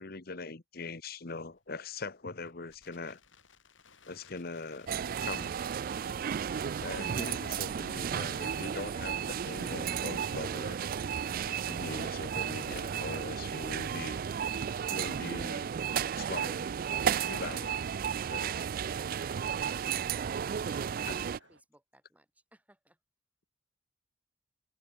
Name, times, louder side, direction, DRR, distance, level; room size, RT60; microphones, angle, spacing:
voice 1, 0.0-3.2 4.0-4.9 5.2-5.6 6.8-10.8 11.4-14.2 14.9-15.7 16.2-16.8 17.2-17.8 18.3-18.7 21.1-21.3, left 3 dB, 55° left, 1.3 m, -41 dB
Crackle, 1.4-10.6, left 5 dB, 90° left, 5.0 m, -61 dB
sound 1, 4.9-21.4, right 8 dB, 50° right, 0.3 m, -33 dB
sound 2, 14.8-21.6, right 3 dB, 75° right, 3.2 m, -62 dB
voice 2, 21.5-23.0, right 1 dB, 10° right, 8.0 m, -63 dB
head